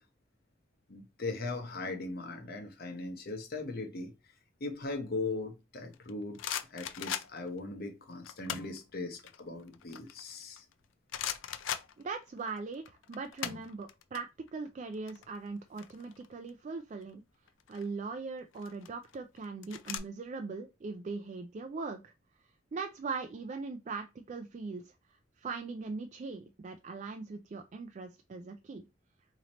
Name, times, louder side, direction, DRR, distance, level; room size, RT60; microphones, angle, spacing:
voice 1, 0.9-4.1 4.6-10.6, left 3 dB, 50° left, 0.8 m, -39 dB
sound 1, 5.9-7.6 8.2-8.8 9.2-10.7 11.1-12.5 12.7-14.2 14.5-14.7 14.9-16.5 17.5-17.9 18.5-20.0, left 9 dB, 75° left, 0.4 m, -39 dB
voice 2, 12.0-17.2 17.7-22.1 22.7-28.8, right 4 dB, 40° right, 0.3 m, -40 dB
3.0 x 2.8 x 4.0 m
head